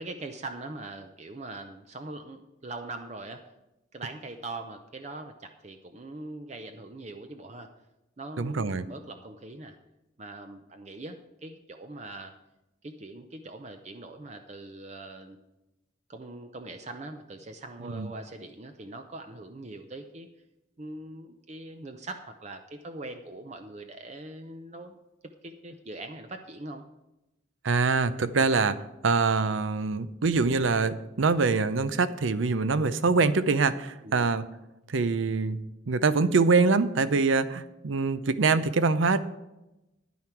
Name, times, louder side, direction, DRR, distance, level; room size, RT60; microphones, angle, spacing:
voice 1, 0.0-3.4 3.9-7.7 8.2-9.8 10.2-12.3 12.8-15.4 16.1-20.3 20.8-25.0 25.4-26.8 34.0-34.3, right 2 dB, 35° right, 6 dB, 0.5 m, -42 dB
voice 2, 8.4-8.9 17.9-18.1 27.6-28.8 29.0-34.4 34.9-35.6 35.9-39.2, right 4 dB, 85° right, 14 dB, 0.6 m, -24 dB
10.5 x 9.4 x 4.5 m, 0.96 s
head